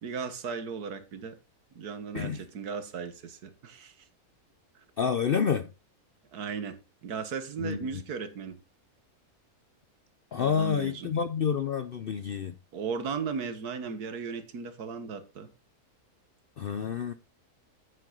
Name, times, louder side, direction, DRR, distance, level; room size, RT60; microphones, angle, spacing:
voice 1, 0.0-1.4 1.7-3.9 6.3-8.6 10.3-11.1 12.7-15.5, right 6 dB, 85° right, 1.8 m, -36 dB
voice 2, 5.0-5.7 7.6-8.0 10.3-12.5 16.6-17.1, left 7 dB, 65° left, 0.5 m, -29 dB
9.1 x 7.7 x 3.9 m
omnidirectional pair, 1.6 m